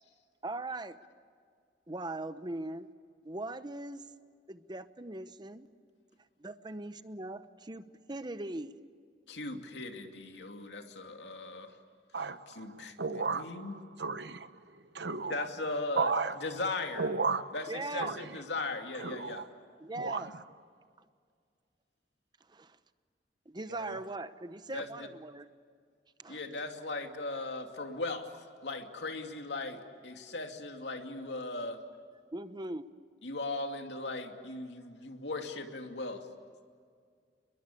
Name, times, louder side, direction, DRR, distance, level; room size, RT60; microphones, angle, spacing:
voice 1, 0.4-1.0 1.9-2.9 3.2-4.1 4.5-5.7 6.4-8.7 17.7-18.2 19.8-20.3 21.0-21.1 22.5-22.8 23.5-25.5 26.2-26.4 32.3-32.9, right 2 dB, 25° right, 12 dB, 0.9 m, -40 dB
voice 2, 9.3-11.7 12.6-13.7 15.3-16.1 16.4-17.1 17.5-19.4 24.7-24.9 26.3-28.3 28.6-31.8 33.2-36.2, left 2 dB, 80° left, 4 dB, 2.6 m, -38 dB
voice 3, 12.1-15.5 15.9-16.4 17.0-17.5 18.0-18.2 19.0-19.5 20.0-20.3 23.7-24.0, right 4 dB, 80° right, 12 dB, 1.1 m, -34 dB
30.0 x 22.0 x 8.6 m, 2.1 s
head